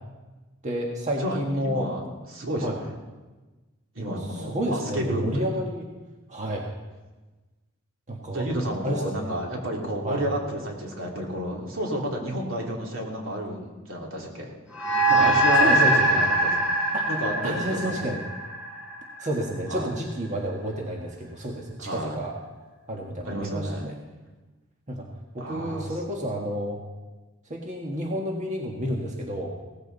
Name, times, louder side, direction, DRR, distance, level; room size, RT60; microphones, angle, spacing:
voice 1, 0.6-1.9 2.6-2.7 4.0-5.9 6.3-6.7 8.1-8.5 8.8-9.3 10.0-10.2 15.2-15.3 15.6-16.1 16.9-17.1 17.4-18.2 19.2-22.3 22.9-23.9 24.9-25.1 25.3-26.8 27.5-29.5, equal, 35° right, -1 dB, 1.5 m, -30 dB
voice 2, 1.2-2.0 2.3-3.0 3.9-5.5 8.3-14.5 15.1-16.5 17.1-18.1 19.7-19.9 21.8-22.2 23.2-23.9 25.4-25.9, right 1 dB, 70° right, -1 dB, 3.0 m, -31 dB
sound 1, 14.7-19.4, right 1 dB, 5° right, 4.8 m, -22 dB
17.5 x 14.0 x 4.0 m, 1.2 s
head